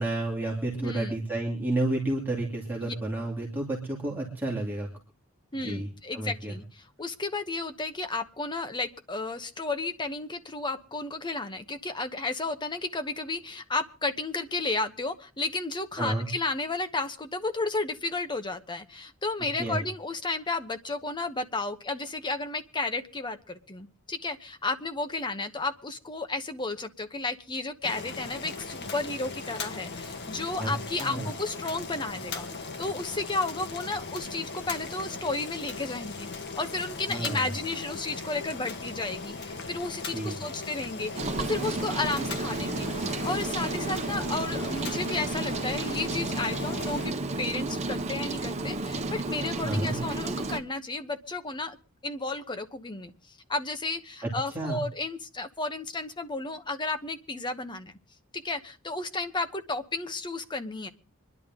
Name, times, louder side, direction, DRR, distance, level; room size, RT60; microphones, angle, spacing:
voice 1, 0.0-4.9 5.6-5.9 6.1-6.6 16.0-16.3 19.6-19.8 30.6-30.7 31.0-31.3 37.1-37.5 40.1-40.4 49.6-50.0 54.2-54.8, right 2 dB, 10° right, -3 dB, 2.8 m, -30 dB
voice 2, 0.8-1.2 2.8-2.9 5.5-36.3 36.6-42.9 43.2-51.8 52.0-57.9 58.3-60.9, left 3 dB, 20° left, 8 dB, 1.0 m, -33 dB
Boiling, 27.8-47.1, left 4 dB, 55° left, 1.5 m, -38 dB
Rain, 41.1-50.6, right 2 dB, 30° right, 1.1 m, -32 dB
25.5 x 11.0 x 3.7 m, 0.35 s
head